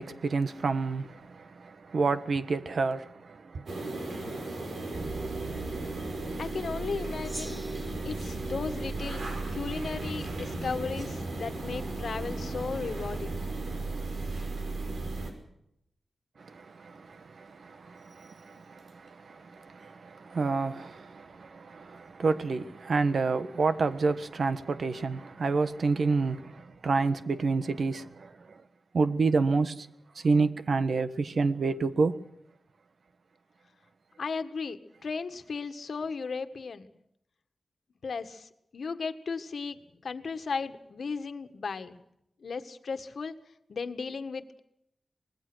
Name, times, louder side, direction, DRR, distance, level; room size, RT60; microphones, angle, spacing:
voice 1, 0.0-3.8 16.4-28.6 28.9-29.9 30.1-32.2, right 4 dB, 65° right, 1.3 m, -29 dB
sound 1, 3.7-15.3, right 2 dB, 85° right, 5.8 m, -37 dB
sound 2, 4.9-15.3, right 4 dB, 45° right, 1.1 m, -38 dB
voice 2, 6.4-7.6 8.0-13.4 34.2-36.9 38.0-39.8 40.0-42.0 42.4-43.4 43.7-44.6, left 5 dB, 70° left, 1.6 m, -35 dB
Gong, 7.2-9.9, right 1 dB, 20° right, 2.0 m, -47 dB
25.0 x 20.5 x 6.2 m
wide cardioid pair, 125°, 0 cm